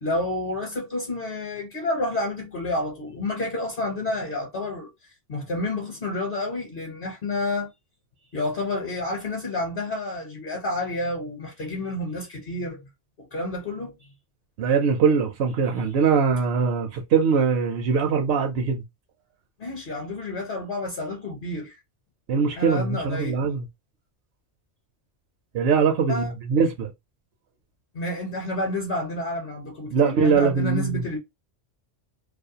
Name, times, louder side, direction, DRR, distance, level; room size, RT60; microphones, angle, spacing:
voice 1, 0.0-4.9 5.3-7.7 8.3-12.8 13.2-14.1 15.8-16.1 19.6-21.8 22.6-23.5 26.1-26.3 27.9-31.2, left 2 dB, 50° left, 0.8 m, -30 dB
voice 2, 14.6-18.8 22.3-23.6 25.5-26.9 29.9-31.0, right 5 dB, 65° right, 0.7 m, -22 dB
2.4 x 2.1 x 2.7 m
omnidirectional pair, 1.2 m